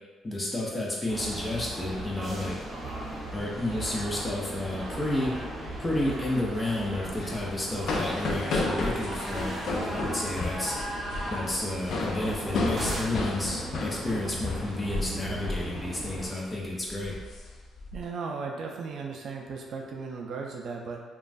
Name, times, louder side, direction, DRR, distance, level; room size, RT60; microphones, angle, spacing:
voice 1, 0.2-2.6 3.3-5.4 5.8-10.8 11.3-17.2, left 1 dB, 25° left, -3 dB, 0.7 m, -31 dB
sound 1, 1.1-16.3, right 1 dB, 40° right, 0.9 m, -37 dB
sound 2, 7.1-15.2 15.4-15.7 16.1-16.4 16.9-18.0, left 3 dB, 70° left, 0.4 m, -33 dB
voice 2, 17.9-21.0, right 4 dB, 65° right, 1 dB, 0.4 m, -36 dB
2.9 x 2.3 x 2.5 m, 1.4 s
cardioid pair, 90°, 0 cm